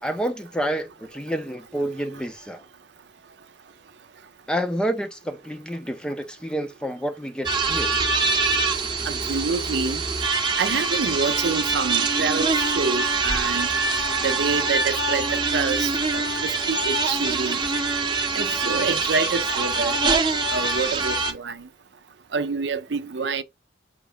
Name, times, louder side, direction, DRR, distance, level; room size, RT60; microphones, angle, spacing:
voice 1, 0.0-2.6 4.5-7.9, right 1 dB, 5° left, 0.5 m, -29 dB
sound 1, 7.4-21.3, right 4 dB, 25° right, 0.8 m, -24 dB
voice 2, 9.1-10.0 10.6-12.5 12.7-13.7 14.2-17.6 18.3-20.0 20.5-21.6 22.3-23.4, right 4 dB, 70° right, 0.6 m, -27 dB
5.1 x 2.8 x 3.4 m
head